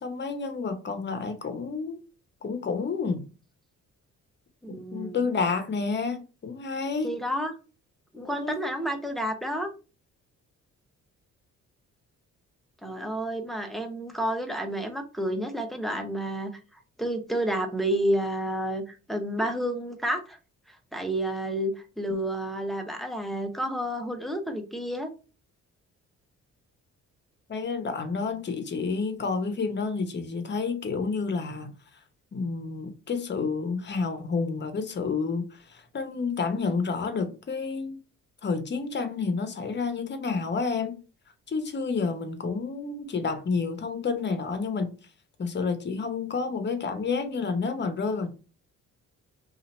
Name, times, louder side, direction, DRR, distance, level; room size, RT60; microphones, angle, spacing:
voice 1, 0.0-2.0 2.4-3.3 4.7-7.1 8.2-8.6 27.5-31.7 32.3-38.0 38.4-41.0 41.5-44.9 45.4-48.3, left 4 dB, 35° left, 0.8 m, -30 dB
voice 2, 4.6-5.2 7.0-7.5 8.1-9.7 12.8-16.5 17.0-20.4 20.9-25.1, right 1 dB, ahead, 0.7 m, -30 dB
2.8 x 2.5 x 4.3 m
cardioid pair, 90°, 30 cm